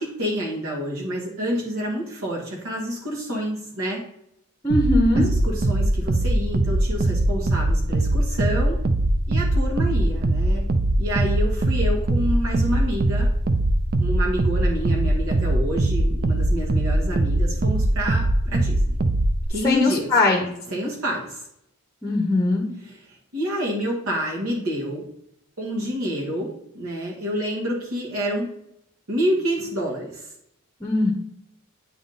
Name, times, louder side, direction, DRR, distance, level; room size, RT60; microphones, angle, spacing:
voice 1, 0.0-4.0 5.2-8.8 9.3-10.6 11.0-13.3 14.0-18.8 19.5-20.1 20.7-21.5 22.8-25.1 25.6-28.5 29.1-30.3, equal, 75° right, -2 dB, 1.4 m, -28 dB
voice 2, 4.6-5.3 19.6-20.5 22.0-22.7 30.8-31.1, left 2 dB, 15° left, 2 dB, 0.8 m, -20 dB
sound 1, 4.7-19.5, right 1 dB, 45° right, 0.5 m, -21 dB
9.1 x 3.6 x 3.9 m, 0.77 s
head